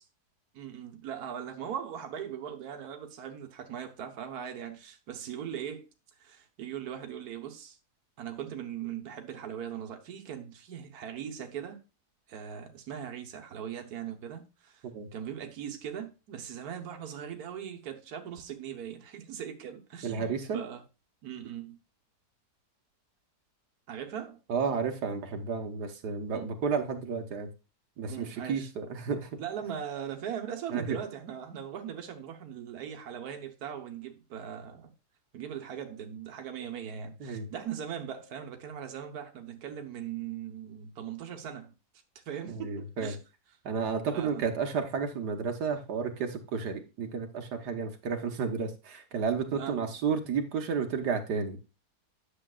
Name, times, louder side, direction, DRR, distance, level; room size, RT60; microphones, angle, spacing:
voice 1, 0.5-5.9 6.2-7.8 8.2-11.8 12.3-14.8 15.1-20.8 21.2-21.8 23.9-24.4 26.3-26.5 28.1-28.7 29.4-34.9 35.3-41.7 42.3-43.2 44.1-44.5 49.5-49.9, right 9 dB, 70° right, 1.6 m, -40 dB
voice 2, 20.0-20.7 24.5-27.5 28.0-29.3 30.7-31.0 37.2-37.5 42.5-43.1 43.6-51.6, right 5 dB, 90° right, 1.7 m, -32 dB
10.0 x 7.2 x 2.4 m
omnidirectional pair, 1.7 m